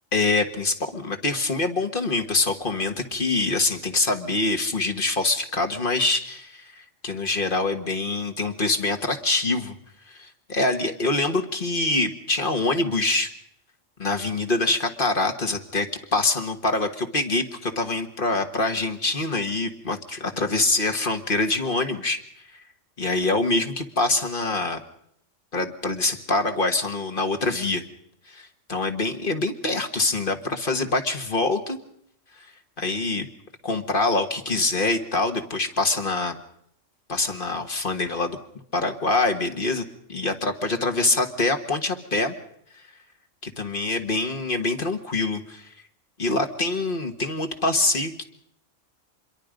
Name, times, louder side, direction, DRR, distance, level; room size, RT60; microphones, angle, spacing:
voice 1, 0.1-9.7 10.1-13.3 14.0-22.2 23.0-24.8 25.5-27.8 28.3-31.8 32.4-32.5 32.8-33.3 33.6-36.4 37.1-38.4 38.7-39.8 40.1-42.3 43.4-45.7 46.2-48.2, left 2 dB, 45° left, 6 dB, 1.7 m, -25 dB
25.5 x 22.5 x 5.2 m, 0.71 s
omnidirectional pair, 1.3 m